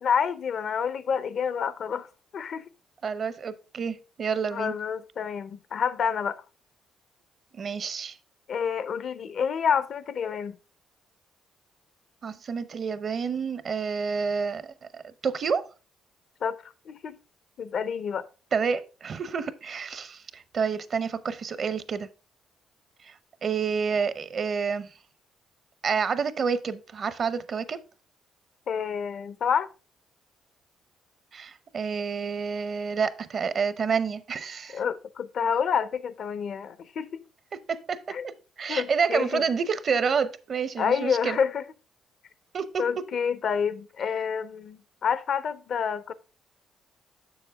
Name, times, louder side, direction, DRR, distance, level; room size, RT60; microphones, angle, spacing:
voice 1, 0.0-2.1 2.3-2.7 4.5-6.4 8.5-10.6 16.4-17.1 17.6-18.3 28.7-29.7 34.7-37.2 38.1-38.2 38.7-39.4 40.8-41.6 42.8-46.1, left 7 dB, 60° left, 0.5 m, -28 dB
voice 2, 3.0-4.7 7.5-8.2 12.2-15.7 18.5-22.1 23.0-24.9 25.8-27.8 31.3-34.8 37.7-38.3 38.6-41.4 42.5-42.8, right 6 dB, 50° right, 0.6 m, -29 dB
7.1 x 6.7 x 3.3 m
cardioid pair, 90°, 0 cm